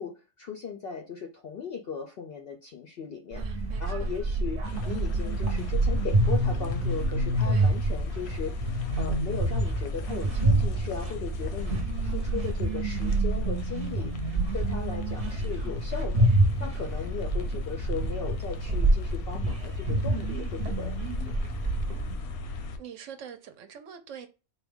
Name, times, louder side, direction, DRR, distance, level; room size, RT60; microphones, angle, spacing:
voice 1, 0.0-14.1 14.5-16.3 16.6-20.9, left 6 dB, 60° left, 0.6 m, -37 dB
sound 1, 3.3-22.1, right 2 dB, 40° right, 0.7 m, -28 dB
voice 2, 3.4-4.1 7.4-7.8 22.5-24.3, right 8 dB, 70° right, 0.9 m, -45 dB
sound 2, 4.6-22.8, left 3 dB, 90° left, 1.1 m, -37 dB
4.2 x 2.2 x 3.5 m
omnidirectional pair, 1.5 m